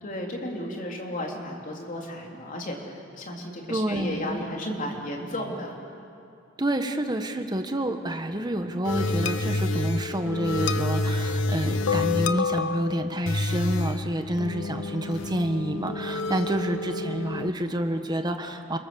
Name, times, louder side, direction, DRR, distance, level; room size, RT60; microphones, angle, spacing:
voice 1, 0.0-5.8, left 1 dB, 45° left, 0 dB, 3.5 m, -34 dB
voice 2, 3.7-4.4 6.6-18.8, right 1 dB, 20° right, 6 dB, 1.3 m, -28 dB
sound 1, 8.8-17.5, left 3 dB, 70° left, 0.8 m, -28 dB
30.0 x 22.0 x 7.0 m, 2.5 s
head